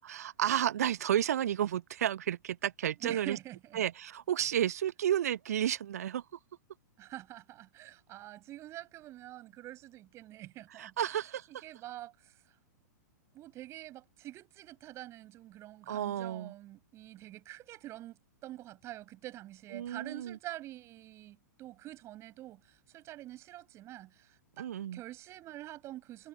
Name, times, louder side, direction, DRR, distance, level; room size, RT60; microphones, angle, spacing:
voice 1, 0.0-3.4 3.7-6.2 10.7-11.6 15.9-16.5 19.7-20.4 24.6-25.0, right 10 dB, 55° right, 0.9 m, -32 dB
voice 2, 3.0-3.8 7.0-12.3 13.3-18.2 18.4-26.3, right 15 dB, 30° right, 7.8 m, -47 dB
figure-of-eight pair, 105°, 10 cm